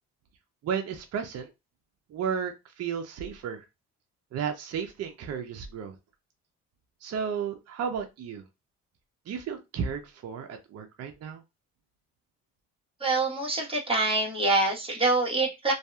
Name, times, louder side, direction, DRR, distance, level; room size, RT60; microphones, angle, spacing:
voice 1, 0.6-1.5 2.1-3.6 4.3-5.9 7.0-8.4 9.3-11.4, right 7 dB, 55° right, 5 dB, 0.6 m, -33 dB
voice 2, 13.0-15.7, right 2 dB, 20° right, -2 dB, 1.2 m, -25 dB
2.6 x 2.4 x 2.3 m, 0.24 s
cardioid pair, 90°, 30 cm